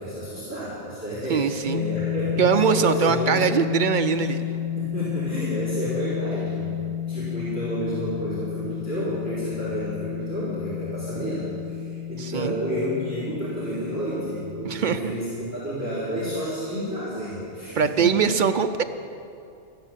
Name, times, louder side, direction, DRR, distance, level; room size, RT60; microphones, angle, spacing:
voice 1, 0.0-3.5 4.1-4.3 4.7-18.3, equal, 10° right, -12 dB, 3.9 m, -30 dB
voice 2, 1.3-1.8 2.4-4.4 12.2-12.6 14.6-15.1 17.8-18.8, right 7 dB, 60° right, 9 dB, 0.5 m, -22 dB
sound 1, 1.7-14.7, left 10 dB, 30° left, 1.0 m, -31 dB
13.5 x 10.5 x 7.3 m, 2.6 s
omnidirectional pair, 1.3 m